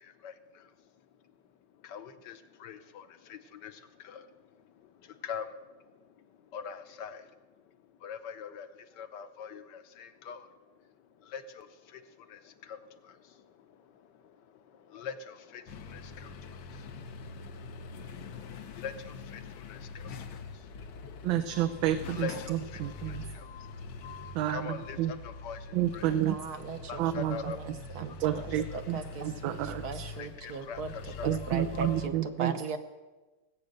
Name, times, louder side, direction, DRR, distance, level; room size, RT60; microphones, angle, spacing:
voice 1, 1.8-3.7 4.0-4.3 5.2-5.5 6.5-7.2 8.0-8.7 9.0-10.5 11.3-11.7 12.3-12.4 12.7-12.8 14.9-15.6 15.9-16.3 17.4-18.0 18.8-19.4 19.7-20.1 20.9-21.4 22.1-23.5 24.5-25.6 25.9-26.1 26.9-27.6 28.4-28.5 28.7-28.8 30.2-31.4, left 7 dB, 65° left, 10 dB, 1.4 m, -42 dB
sound 1, 15.7-32.1, left 4 dB, 90° left, 1.7 m, -44 dB
voice 2, 21.2-23.2 24.3-25.1 25.7-26.4 27.0-27.4 28.2-30.0 31.2-32.5, right 12 dB, 80° right, 9 dB, 1.4 m, -30 dB
voice 3, 26.0-28.5 28.7-30.9 31.2-32.8, right 5 dB, 60° right, 8 dB, 1.2 m, -39 dB
18.5 x 8.3 x 6.6 m, 1.2 s
omnidirectional pair, 2.1 m